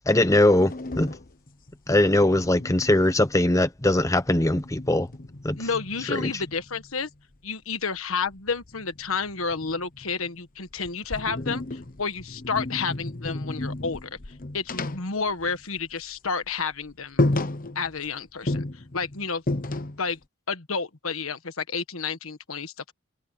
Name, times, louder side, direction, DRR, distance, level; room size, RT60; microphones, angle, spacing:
voice 1, 0.1-1.1 1.9-5.1 5.4-5.6 6.1-6.3, left 1 dB, 15° left, 0.8 m, -21 dB
sound 1, 0.5-3.7 4.0-6.9 8.3-10.3 10.7-16.0 16.3-16.5 16.8-16.9 17.2-18.1 18.5-20.2, left 2 dB, 40° left, 1.0 m, -33 dB
voice 2, 5.5-7.1 7.4-14.1 14.5-17.3 17.7-19.4 20.0-20.2 20.5-22.9, left 5 dB, 75° left, 1.5 m, -30 dB
head